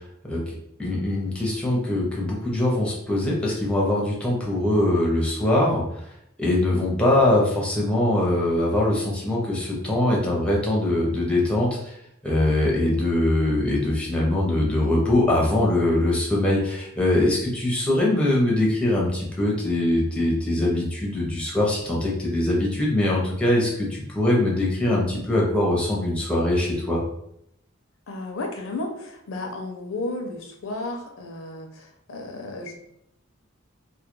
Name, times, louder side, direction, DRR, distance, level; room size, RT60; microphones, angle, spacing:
voice 1, 0.8-5.8 6.4-12.0 12.2-27.0, left 1 dB, 5° left, -4 dB, 0.5 m, -22 dB
voice 2, 28.1-32.7, left 2 dB, 70° left, 3 dB, 0.5 m, -33 dB
2.2 x 2.2 x 2.9 m, 0.75 s
head